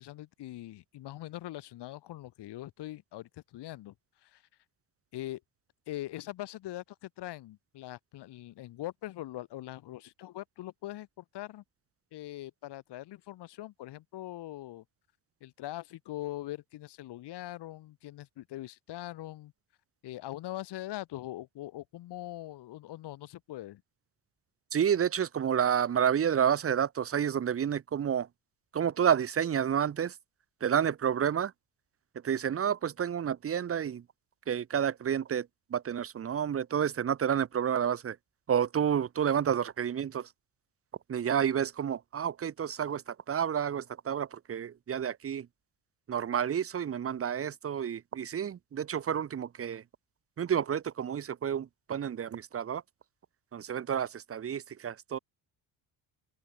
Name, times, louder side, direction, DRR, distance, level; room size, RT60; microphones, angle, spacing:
voice 1, 0.0-3.9 4.2-4.4 5.1-5.4 5.9-11.6 12.1-14.8 15.4-19.5 20.0-23.8, left 15 dB, 75° left, 2.2 m, -42 dB
voice 2, 24.7-28.3 28.7-30.1 30.6-31.5 32.2-34.0 34.5-38.2 38.5-40.3 41.1-45.5 46.1-49.8 50.4-52.8 53.5-55.2, right 8 dB, 35° right, 1.0 m, -30 dB
open air
cardioid pair, 150°, 41 cm